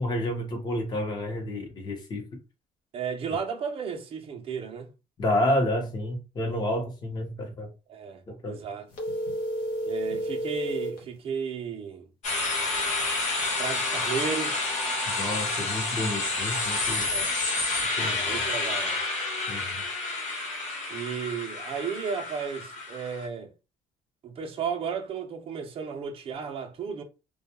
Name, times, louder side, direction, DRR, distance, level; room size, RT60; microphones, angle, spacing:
voice 1, 0.0-2.4 5.2-7.7 8.3-8.6 15.2-17.1 18.0-18.4 19.5-19.8, left 1 dB, 30° left, 0.8 m, -30 dB
voice 2, 2.9-4.9 7.9-8.9 9.8-12.1 13.6-14.7 17.1-17.3 18.2-19.0 20.9-23.5 24.2-27.0, right 6 dB, 40° right, 0.5 m, -34 dB
sound 1, 8.9-11.0, right 1 dB, 75° left, 0.7 m, -31 dB
sound 2, 12.2-23.2, left 3 dB, 55° left, 1.1 m, -29 dB
2.2 x 2.2 x 2.8 m
cardioid pair, 155°, 14 cm